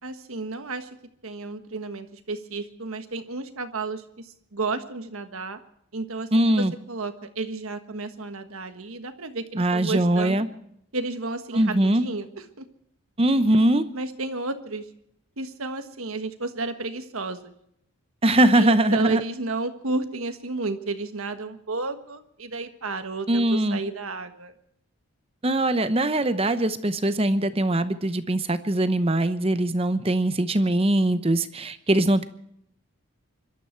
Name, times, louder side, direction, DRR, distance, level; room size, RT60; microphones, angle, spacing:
voice 1, 0.0-0.9 1.2-5.6 5.9-10.4 10.9-12.7 13.9-14.9 15.4-17.5 18.5-24.5, right 3 dB, 75° right, 8 dB, 1.5 m, -32 dB
voice 2, 6.3-6.7 9.5-10.5 11.5-12.0 13.2-13.9 18.2-19.2 23.3-23.8 25.4-32.2, right 1 dB, 25° right, 12 dB, 0.8 m, -21 dB
24.5 x 12.5 x 4.5 m, 0.73 s
head